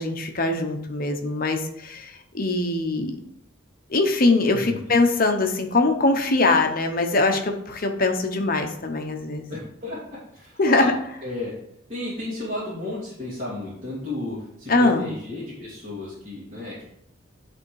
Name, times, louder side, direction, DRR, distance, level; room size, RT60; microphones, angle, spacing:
voice 1, 0.0-3.2 3.9-9.5 10.6-10.9 14.7-15.1, left 2 dB, 45° left, 4 dB, 0.9 m, -22 dB
voice 2, 4.5-4.9 9.5-10.9 11.2-11.5 11.9-16.8, left 2 dB, 30° right, -10 dB, 2.6 m, -33 dB
10.5 x 3.6 x 4.7 m, 0.74 s
head